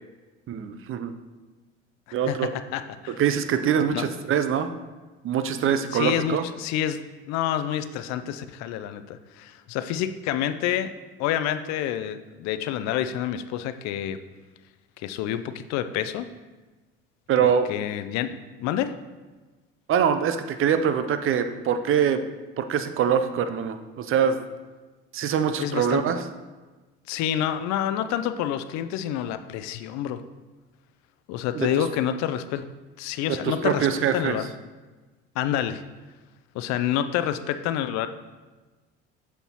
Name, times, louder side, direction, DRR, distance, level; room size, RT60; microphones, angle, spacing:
voice 1, 0.5-1.1 2.1-2.5 3.1-4.7 5.2-6.4 17.3-17.7 19.9-22.2 22.6-24.4 25.1-26.2 31.6-31.8 33.3-34.4, right 8 dB, 40° right, 10 dB, 0.5 m, -24 dB
voice 2, 2.3-3.2 3.9-4.1 5.9-7.0 7.3-10.9 11.2-14.2 15.0-16.3 17.4-19.0 25.6-26.0 27.1-30.2 31.3-32.7 33.0-33.9 34.1-34.5 35.4-35.8 36.5-38.1, left 10 dB, 55° left, 11 dB, 0.5 m, -28 dB
7.8 x 4.5 x 2.9 m, 1.3 s
hypercardioid pair, 65°, 32 cm